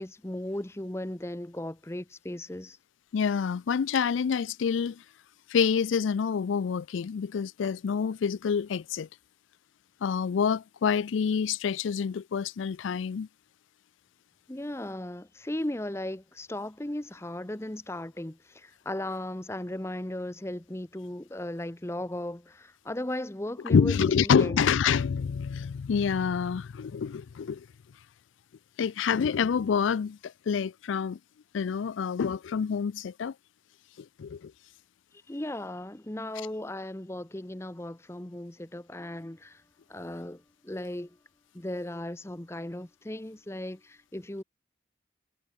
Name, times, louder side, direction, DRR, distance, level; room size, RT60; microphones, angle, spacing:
voice 1, 0.0-2.8 14.5-24.6 35.3-39.6 39.9-41.2 41.5-44.4, left 1 dB, 15° left, 0.8 m, -36 dB
voice 2, 3.1-5.0 5.5-9.1 10.0-13.3 23.7-27.7 28.8-31.2 31.5-33.3 34.0-34.5, left 6 dB, 85° left, 0.4 m, -27 dB
head